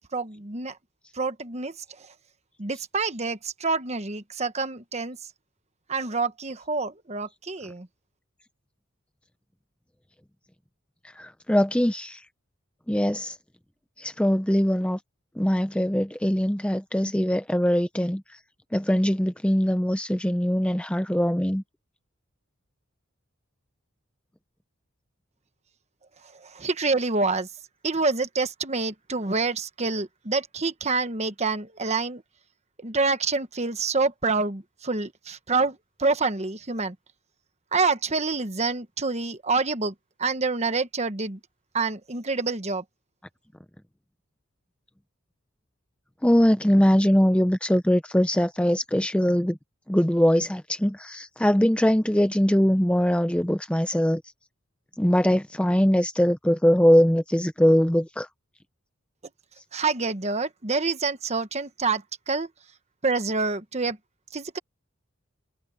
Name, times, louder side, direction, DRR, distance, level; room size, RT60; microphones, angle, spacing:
voice 1, 0.1-0.8 1.1-1.8 2.6-5.2 5.9-7.9 26.3-27.5 27.8-32.2 32.8-36.9 37.7-39.9 40.2-41.4 41.7-42.8 59.7-62.5 63.0-64.0 64.3-64.6, right 4 dB, 30° right, 1.2 m, -27 dB
voice 2, 11.2-12.2 12.9-13.4 14.0-15.0 15.4-18.2 18.7-21.6 46.2-49.6 49.9-54.2 55.0-58.3, equal, 5° left, 0.6 m, -22 dB
head